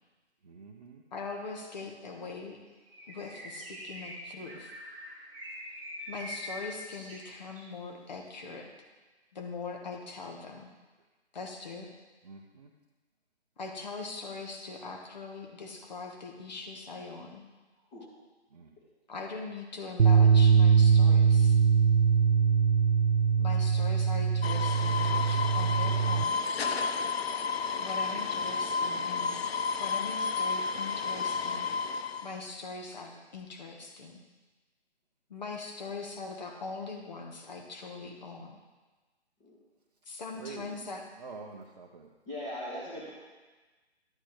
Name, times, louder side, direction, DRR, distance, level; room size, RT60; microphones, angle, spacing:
voice 1, 0.4-1.0 12.2-12.7 18.5-18.7 40.3-40.7 41.2-42.1, right 4 dB, 35° right, -1 dB, 0.7 m, -46 dB
voice 2, 1.1-2.6 3.1-4.7 6.1-8.7 9.3-10.7 11.3-11.9 13.6-17.4 19.1-21.6 23.4-26.4 27.8-29.4 29.8-34.2 35.3-38.6 40.1-41.0, left 4 dB, 40° left, 2 dB, 1.4 m, -41 dB
Bird, 2.8-7.8, equal, 10° right, 1.3 m, -44 dB
sound 1, 20.0-26.2, right 6 dB, 85° right, 0.5 m, -22 dB
sound 2, 24.4-32.3, left 5 dB, 65° left, 0.5 m, -31 dB
voice 3, 42.3-43.1, left 1 dB, 15° left, -8 dB, 1.6 m, -39 dB
11.5 x 8.3 x 3.2 m, 1.3 s
figure-of-eight pair, 150°, 34 cm